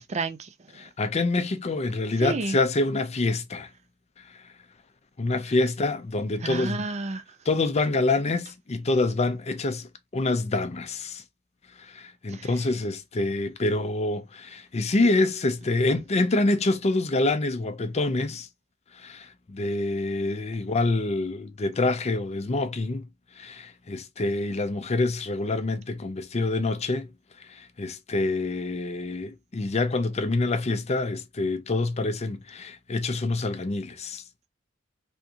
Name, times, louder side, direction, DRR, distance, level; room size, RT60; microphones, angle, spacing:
voice 1, 0.0-0.9 2.2-2.6 6.4-7.2 12.3-12.5, right 3 dB, 35° right, 0.5 m, -31 dB
voice 2, 0.8-3.7 4.2-4.5 5.2-6.8 7.5-11.2 11.8-18.5 18.9-23.1 23.4-27.1 27.4-34.2, left 2 dB, 30° left, 0.5 m, -26 dB
3.5 x 2.7 x 2.8 m
head